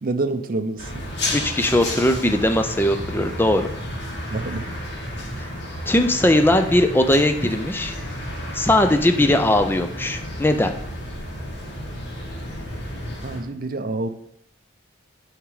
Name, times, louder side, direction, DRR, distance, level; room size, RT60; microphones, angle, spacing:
voice 1, 0.0-1.0 4.3-4.7 13.2-14.1, right 2 dB, 50° right, 8 dB, 0.6 m, -27 dB
sound 1, 0.8-13.4, left 1 dB, 65° left, 2.0 m, -32 dB
voice 2, 1.3-3.7 5.4-5.5 5.9-7.9 8.5-10.7, left 1 dB, 10° left, 7 dB, 0.5 m, -19 dB
8.4 x 3.6 x 4.9 m, 0.73 s
head